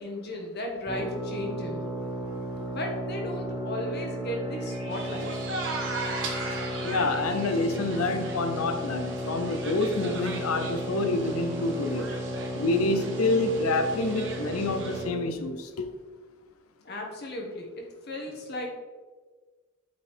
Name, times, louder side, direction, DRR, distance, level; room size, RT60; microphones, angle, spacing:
voice 1, 0.0-1.8 2.7-5.3 16.8-18.7, left 1 dB, 50° left, 0 dB, 1.3 m, -35 dB
sound 1, 0.9-15.4, equal, 15° right, 0.9 m, -34 dB
sound 2, 1.0-9.2, right 3 dB, 75° right, 2.2 m, -48 dB
sound 3, 4.9-15.0, right 3 dB, 60° right, 1.2 m, -38 dB
voice 2, 6.8-12.1 12.5-15.9, left 2 dB, 90° left, 8 dB, 0.6 m, -27 dB
8.5 x 4.2 x 4.4 m, 1.4 s
head